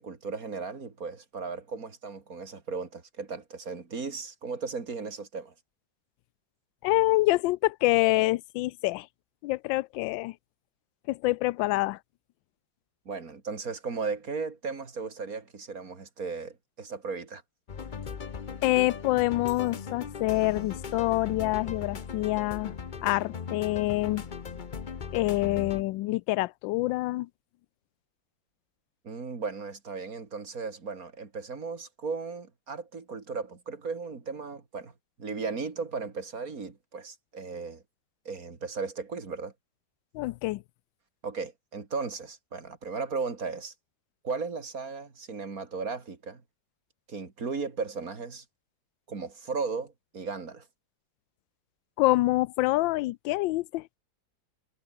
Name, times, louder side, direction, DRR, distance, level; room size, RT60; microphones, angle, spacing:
voice 1, 0.0-5.5 13.0-17.4 29.0-34.9 35.2-37.8 38.2-39.5 41.2-43.7 44.2-46.4 47.1-48.4 49.1-50.7, right 4 dB, 45° right, 3.2 m, -36 dB
voice 2, 6.8-9.1 9.4-10.3 11.1-12.0 18.6-22.7 23.0-24.2 25.1-27.3 40.1-40.6 52.0-53.9, left 19 dB, 80° left, 1.3 m, -26 dB
sound 1, 17.7-25.8, left 6 dB, 40° left, 0.7 m, -38 dB
omnidirectional pair, 2.1 m